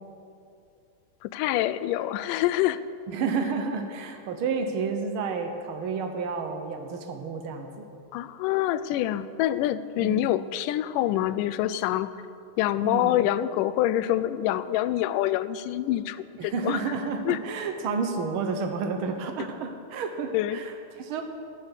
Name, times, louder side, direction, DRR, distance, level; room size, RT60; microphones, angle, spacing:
voice 1, 1.2-2.8 8.1-12.1 12.6-16.8 17.3-17.4 20.3-20.6, left 13 dB, 85° left, 14 dB, 2.1 m, -26 dB
voice 2, 3.1-7.9 10.0-10.3 12.8-13.2 16.4-21.2, right 5 dB, 85° right, 5 dB, 1.1 m, -30 dB
15.0 x 6.8 x 9.7 m, 2.5 s
omnidirectional pair, 3.7 m